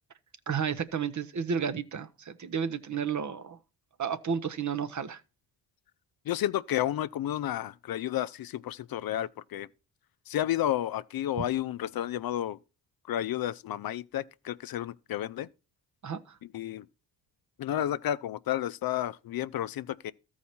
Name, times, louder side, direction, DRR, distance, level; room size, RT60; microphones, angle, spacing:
voice 1, 0.5-3.6 4.0-5.2 16.0-16.4, right 7 dB, 40° right, 0.8 m, -32 dB
voice 2, 6.3-9.7 10.3-12.6 13.1-15.5 16.4-16.9 17.6-20.1, left 12 dB, 55° left, 0.5 m, -31 dB
13.5 x 4.7 x 4.3 m
supercardioid pair, 55°, 43 cm